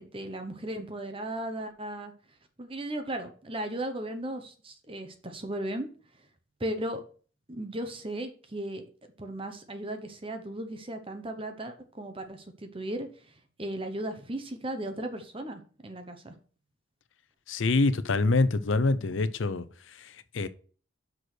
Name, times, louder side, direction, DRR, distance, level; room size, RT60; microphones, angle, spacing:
voice 1, 0.0-2.1 2.6-5.9 6.6-7.0 7.5-8.8 9.2-13.1 13.6-16.3, right 1 dB, 30° right, 1.0 m, -36 dB
voice 2, 17.5-20.5, left 3 dB, 85° left, 0.6 m, -26 dB
6.1 x 5.0 x 6.2 m
head